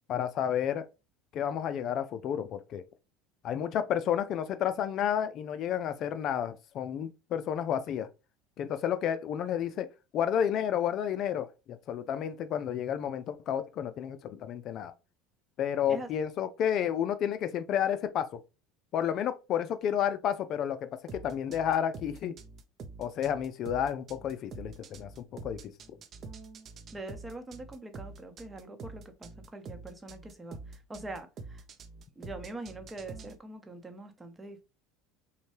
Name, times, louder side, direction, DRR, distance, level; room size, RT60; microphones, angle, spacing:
voice 1, 0.1-0.8 1.3-2.8 3.4-8.1 8.6-9.9 10.1-14.9 15.6-18.3 18.9-20.8 21.1-22.3 23.0-25.1 25.4-25.7, left 9 dB, 50° left, 0.4 m, -31 dB
sound 1, 21.1-33.4, right 3 dB, 40° right, 0.6 m, -46 dB
voice 2, 26.9-31.6 32.2-34.6, right 2 dB, 15° right, 0.8 m, -43 dB
5.4 x 2.2 x 3.2 m
supercardioid pair, 120°, 0 cm